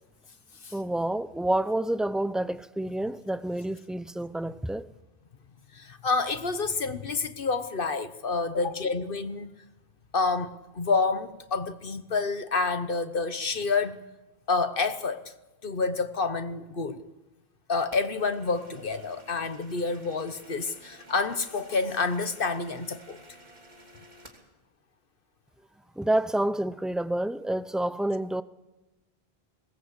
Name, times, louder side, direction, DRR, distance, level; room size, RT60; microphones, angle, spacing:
voice 1, 0.7-4.9 26.0-28.4, right 1 dB, ahead, 0.4 m, -28 dB
voice 2, 5.7-9.5 10.1-14.0 14.5-15.3 15.6-17.0 17.7-23.2, left 4 dB, 60° left, 1.2 m, -28 dB
sound 1, 17.9-24.5, right 1 dB, 45° right, 3.2 m, -52 dB
21.0 x 17.5 x 8.2 m
omnidirectional pair, 1.0 m